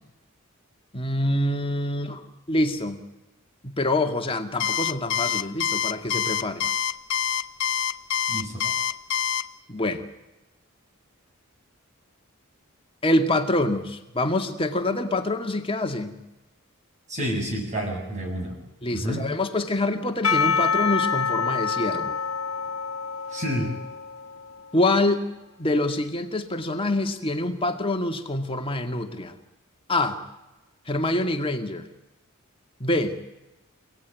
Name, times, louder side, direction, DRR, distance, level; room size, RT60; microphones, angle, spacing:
voice 1, 0.9-3.0 3.6-6.7 9.7-10.0 13.0-16.2 18.8-22.2 24.7-25.3 25.6-29.4 29.9-30.2 30.9-31.9 32.8-33.2, left 1 dB, 25° left, 6 dB, 2.0 m, -26 dB
Alarm, 4.6-9.4, left 9 dB, 55° left, 1.0 m, -25 dB
voice 2, 8.3-8.7 17.1-18.6 18.9-19.3 23.3-23.8, equal, 35° right, 1 dB, 7.9 m, -29 dB
Percussion / Church bell, 20.2-24.7, left 5 dB, 75° left, 1.4 m, -26 dB
29.5 x 17.5 x 9.4 m, 1.0 s
head